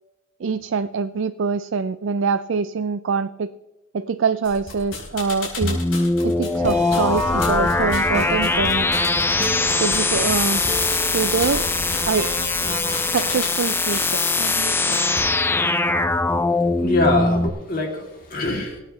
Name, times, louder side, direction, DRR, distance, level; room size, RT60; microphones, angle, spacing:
voice 1, 0.4-3.5 3.9-5.8 6.2-8.9 9.8-10.6 11.1-11.7 12.1-12.3 13.1-15.0, right 5 dB, 65° right, 12 dB, 0.4 m, -24 dB
sound 1, 4.4-15.2, left 3 dB, 85° left, 5.1 m, -34 dB
sound 2, 5.6-17.5, left 3 dB, 10° left, 0.4 m, -21 dB
sound 3, 6.6-13.4, right 2 dB, 35° right, 1.3 m, -32 dB
voice 2, 16.8-18.8, left 2 dB, 45° left, -1 dB, 2.9 m, -23 dB
20.5 x 9.1 x 3.2 m, 1.0 s
head